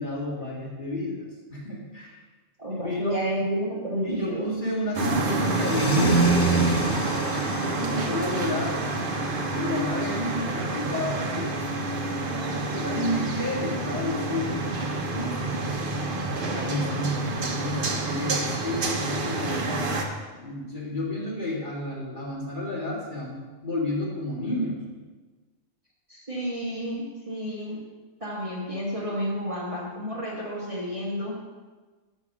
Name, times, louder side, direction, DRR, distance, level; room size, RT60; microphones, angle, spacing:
voice 1, 0.0-2.2 2.7-3.2 4.0-6.4 7.6-8.7 9.5-11.6 12.2-15.6 16.4-19.9 20.4-24.8, left 1 dB, 35° left, -5 dB, 1.9 m, -31 dB
voice 2, 2.6-4.5 26.1-27.8 28.2-31.4, equal, 25° right, -5 dB, 1.4 m, -30 dB
sound 1, 4.9-20.0, right 2 dB, 45° right, 0.9 m, -27 dB
sound 2, 5.0-10.4, left 7 dB, 75° left, 1.0 m, -41 dB
8.0 x 5.2 x 6.0 m, 1.3 s
omnidirectional pair, 1.5 m